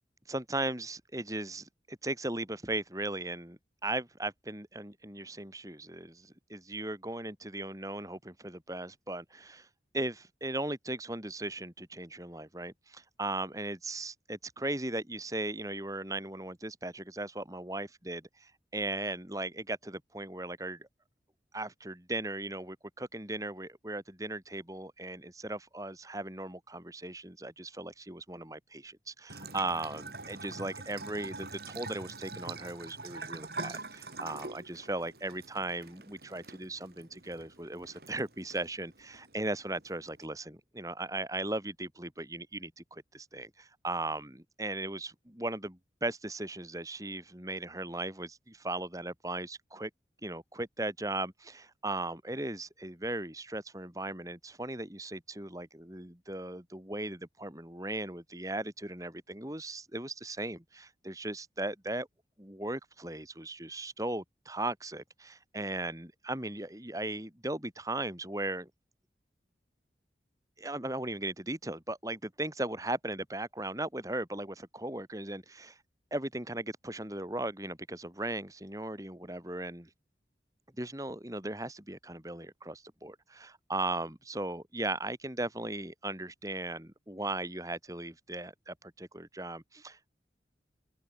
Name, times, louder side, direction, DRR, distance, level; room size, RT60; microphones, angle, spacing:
voice 1, 0.3-9.7 9.9-20.9 21.5-49.9 50.2-62.1 62.4-68.7 70.6-75.8 76.1-79.9 80.8-90.1, right 2 dB, 20° right, 3.3 m, -37 dB
Bathtub (filling or washing) / Trickle dribble, 29.3-40.3, right 3 dB, 60° right, 7.4 m, -45 dB
open air
head